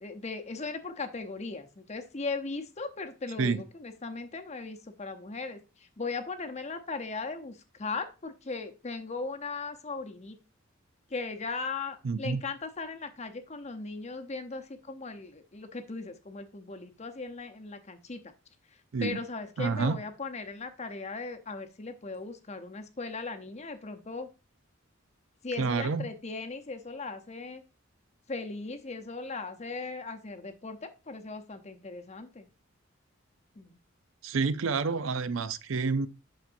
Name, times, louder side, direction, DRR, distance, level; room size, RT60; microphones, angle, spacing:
voice 1, 0.0-10.4 11.1-18.2 19.0-24.3 25.4-27.6 28.3-32.5 33.6-33.8, left 3 dB, 35° left, 0.7 m, -38 dB
voice 2, 12.0-12.4 18.9-19.2 19.6-20.0 25.6-26.1 34.2-36.1, right 4 dB, 70° right, 0.5 m, -28 dB
8.7 x 5.9 x 2.6 m
head